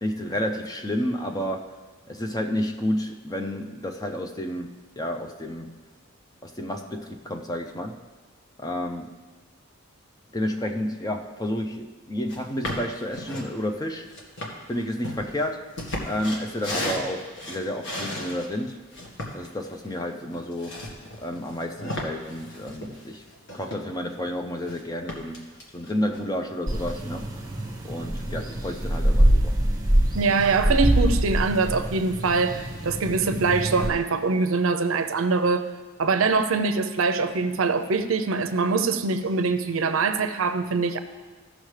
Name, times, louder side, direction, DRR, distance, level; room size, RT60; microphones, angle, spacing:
voice 1, 0.0-1.8 2.1-4.7 5.0-5.8 6.4-8.0 8.6-9.2 10.3-14.1 14.7-15.6 16.0-18.8 19.3-20.8 21.2-23.2 23.5-27.3 27.8-29.6, left 1 dB, 15° left, 4 dB, 0.5 m, -30 dB
sound 1, 12.3-12.4 12.6-13.5 14.1-18.5 18.9-24.1 24.4-24.8 25.1-26.3, left 1 dB, 55° left, 1.5 m, -35 dB
sound 2, 26.7-33.9, right 1 dB, 15° right, 1.2 m, -24 dB
voice 2, 30.2-35.7 36.0-41.0, right 4 dB, 65° right, 9 dB, 0.6 m, -23 dB
15.5 x 6.4 x 3.3 m, 1.4 s
head